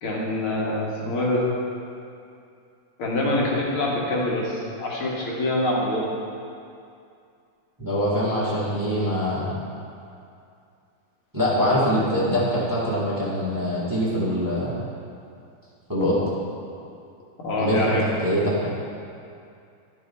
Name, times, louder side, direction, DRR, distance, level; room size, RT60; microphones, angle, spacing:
voice 1, 0.0-1.4 3.0-6.1 17.4-18.0, left 1 dB, 75° left, -5 dB, 2.3 m, -25 dB
voice 2, 7.8-9.5 11.3-14.7 15.9-16.2 17.6-18.6, equal, 10° right, -9 dB, 1.6 m, -23 dB
12.0 x 5.6 x 4.2 m, 2.5 s
omnidirectional pair, 2.4 m